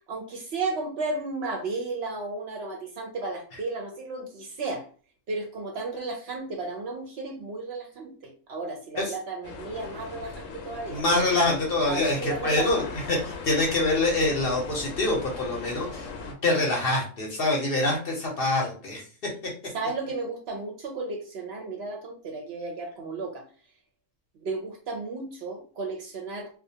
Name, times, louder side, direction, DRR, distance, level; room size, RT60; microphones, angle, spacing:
voice 1, 0.1-4.9 5.3-11.0 11.9-12.9 19.7-23.4 24.4-26.5, right 3 dB, 65° right, 1 dB, 0.7 m, -34 dB
sound 1, 9.4-16.3, left 4 dB, 80° left, 0.9 m, -39 dB
voice 2, 10.9-16.1 16.4-19.0, left 2 dB, 55° left, -1 dB, 0.7 m, -25 dB
2.3 x 2.2 x 2.7 m, 0.41 s
omnidirectional pair, 1.4 m